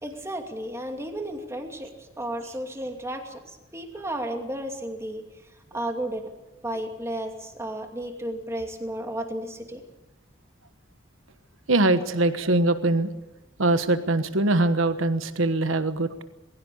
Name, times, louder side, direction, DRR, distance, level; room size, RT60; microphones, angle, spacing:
voice 1, 0.0-3.4 3.7-5.2 5.7-6.2 6.6-9.8, right 1 dB, 15° right, 4 dB, 2.6 m, -33 dB
voice 2, 11.7-13.1 13.6-16.2, right 2 dB, 80° right, 11 dB, 1.3 m, -22 dB
21.0 x 16.5 x 8.6 m, 1.0 s
head